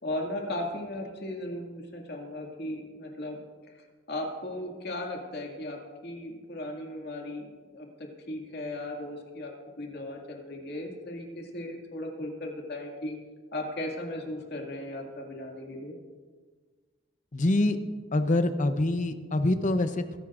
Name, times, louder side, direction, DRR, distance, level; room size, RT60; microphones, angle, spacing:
voice 1, 0.0-3.4 4.1-9.5 9.8-13.2 13.5-15.9, left 1 dB, 60° left, 1 dB, 2.2 m, -36 dB
voice 2, 17.3-17.8 18.1-20.2, left 2 dB, 40° left, 9 dB, 0.8 m, -25 dB
22.0 x 11.0 x 2.5 m, 1.5 s
head